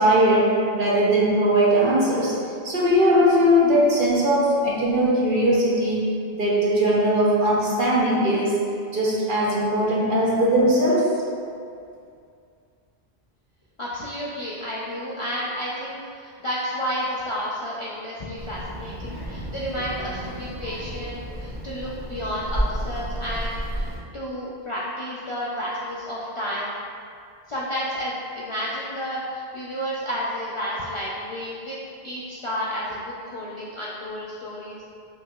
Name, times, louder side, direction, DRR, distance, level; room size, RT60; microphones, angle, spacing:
voice 1, 0.0-2.3 2.6-6.0 6.3-8.6 8.9-11.1, equal, 60° right, -6 dB, 0.9 m, -19 dB
voice 2, 13.8-23.9 24.1-26.7 27.5-31.8 32.0-34.8, equal, 50° left, -7 dB, 0.4 m, -31 dB
Child speech kid speaking, 18.4-24.0, equal, 25° right, 1.1 m, -32 dB
5.8 x 2.7 x 2.3 m, 2.4 s
omnidirectional pair, 1.0 m